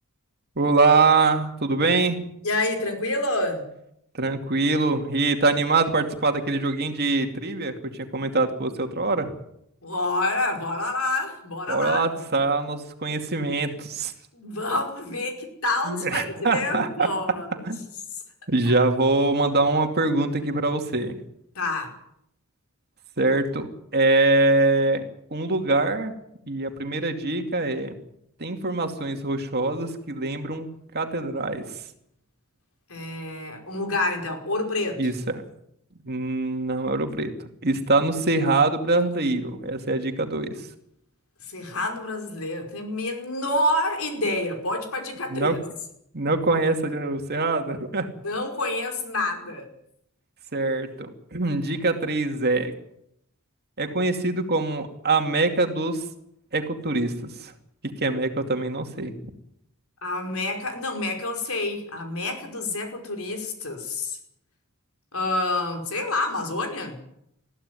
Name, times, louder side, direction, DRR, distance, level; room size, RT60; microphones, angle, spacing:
voice 1, 0.6-2.2 4.1-9.3 11.7-14.1 15.9-17.1 17.7-17.8 18.5-21.1 23.2-25.0 25.3-26.1 26.5-27.9 28.4-30.7 30.9-31.6 35.0-35.4 36.1-37.3 37.6-40.7 45.3-45.6 46.1-48.1 50.5-52.7 53.8-56.0 56.5-57.5 57.8-59.1, right 3 dB, 45° right, 5 dB, 2.5 m, -24 dB
voice 2, 2.4-3.6 9.8-12.0 14.3-17.7 18.7-18.9 21.6-21.9 32.9-35.0 41.5-45.6 48.2-49.7 60.0-64.2 65.1-67.0, left 2 dB, 70° left, 4 dB, 5.2 m, -28 dB
21.5 x 15.0 x 9.7 m, 0.77 s
head